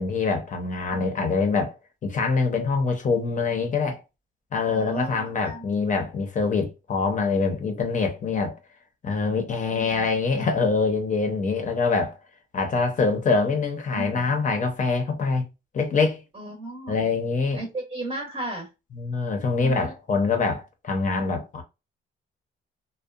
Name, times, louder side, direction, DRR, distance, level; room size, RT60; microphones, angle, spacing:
voice 1, 0.0-1.8 2.0-4.0 4.5-8.5 9.0-12.2 12.5-15.4 15.7-16.2 16.9-17.6 18.9-21.6, left 4 dB, 40° left, 0.6 m, -24 dB
voice 2, 4.6-5.7 9.7-10.1 13.9-14.2 16.3-17.0 17.5-18.7 19.6-19.9, right 2 dB, 25° right, 0.7 m, -35 dB
2.7 x 2.1 x 2.3 m
cardioid pair, 120°, 21 cm